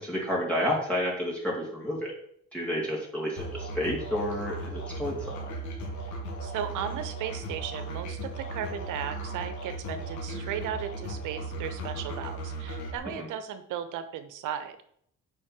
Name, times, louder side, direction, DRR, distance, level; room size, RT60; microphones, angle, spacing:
voice 1, 0.0-2.1 2.5-5.5 13.2-13.3, left 1 dB, 5° left, -5 dB, 3.1 m, -30 dB
Musical instrument, 3.4-13.0, right 2 dB, 80° left, 2.9 m, -37 dB
voice 2, 6.4-14.8, right 9 dB, 90° right, 9 dB, 1.0 m, -36 dB
7.3 x 5.6 x 6.1 m, 0.66 s
cardioid pair, 90°, 30 cm